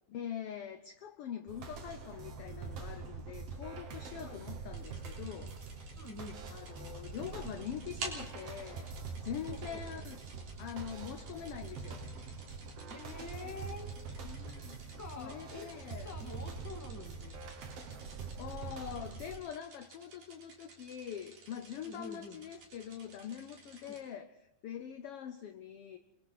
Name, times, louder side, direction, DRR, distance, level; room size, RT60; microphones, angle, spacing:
voice 1, 0.1-5.6 6.5-8.9 9.2-10.2 10.6-12.0 14.2-14.8 15.2-16.1 18.4-24.3 24.6-26.0, left 9 dB, 75° left, 8 dB, 1.3 m, -44 dB
sound 1, 1.5-19.4, right 4 dB, 55° right, 2.4 m, -44 dB
sound 2, 4.7-24.0, right 3 dB, 85° right, 5.3 m, -52 dB
voice 2, 6.0-6.5 9.4-9.8 12.9-13.9 15.0-17.4 21.8-22.5 23.8-24.0, left 3 dB, 5° left, 2 dB, 1.7 m, -47 dB
27.5 x 22.5 x 4.2 m, 0.80 s
omnidirectional pair, 3.7 m